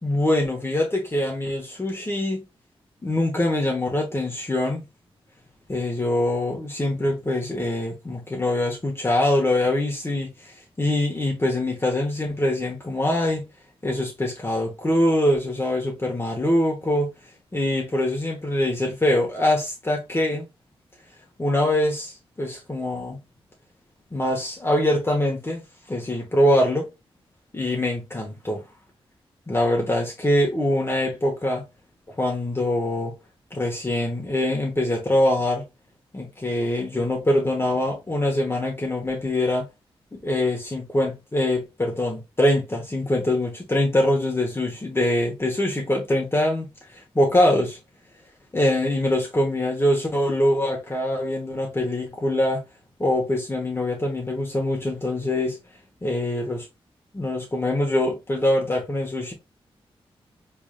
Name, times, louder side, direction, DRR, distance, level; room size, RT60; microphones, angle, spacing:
voice 1, 0.0-2.4 3.0-4.8 5.7-13.5 13.8-17.1 17.5-20.4 21.4-23.2 24.1-26.9 27.5-28.6 29.5-31.6 32.2-33.1 33.5-35.6 36.1-39.7 40.2-46.7 46.9-47.8 48.5-52.6 53.0-55.6 56.0-56.7 57.1-59.3, left 1 dB, 25° left, 1.1 m, -23 dB
3.5 x 3.3 x 2.3 m
cardioid pair, 60°, 10 cm